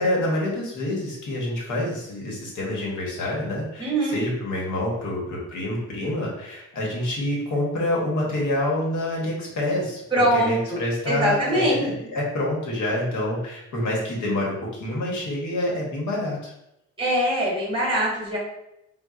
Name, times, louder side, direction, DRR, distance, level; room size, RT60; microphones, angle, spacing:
voice 1, 0.0-16.5, left 1 dB, 70° left, -3 dB, 1.1 m, -27 dB
voice 2, 3.8-4.2 10.1-10.8 11.1-11.9 17.0-18.4, right 1 dB, 15° right, -4 dB, 1.1 m, -22 dB
4.0 x 2.2 x 2.4 m, 0.85 s
cardioid pair, 130°, 31 cm